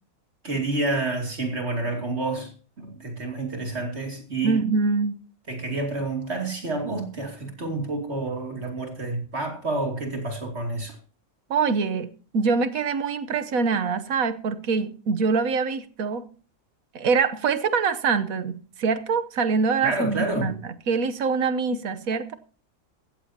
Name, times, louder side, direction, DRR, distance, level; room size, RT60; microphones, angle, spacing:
voice 1, 0.4-2.5 2.8-4.6 5.5-11.0 19.8-20.5, right 2 dB, 50° right, 3.0 m, -29 dB
voice 2, 4.4-5.1 11.5-16.2 16.9-20.6 20.9-22.3, right 5 dB, 85° right, 1.4 m, -24 dB
17.0 x 14.0 x 2.8 m
omnidirectional pair, 1.4 m